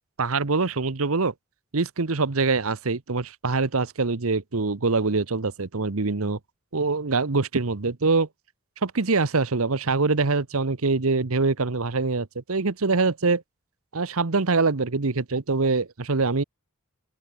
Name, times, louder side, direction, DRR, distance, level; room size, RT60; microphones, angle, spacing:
voice 1, 0.2-1.3 1.7-6.4 6.7-8.3 8.8-13.4 13.9-16.4, right 3 dB, 70° right, 1.1 m, -24 dB
head